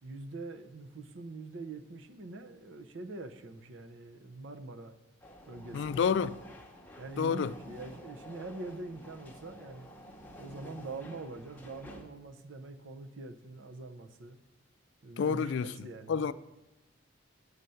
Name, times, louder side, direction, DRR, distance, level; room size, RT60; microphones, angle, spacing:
voice 1, 0.0-5.0 5.5-6.3 7.0-9.9 10.4-14.4 15.0-16.3, right 2 dB, 75° right, 0.7 m, -44 dB
sound 1, 5.2-12.0, equal, 10° left, 0.8 m, -50 dB
voice 2, 5.7-6.3 7.2-7.5 15.2-16.3, left 6 dB, 65° left, 0.3 m, -29 dB
8.1 x 5.5 x 7.6 m
head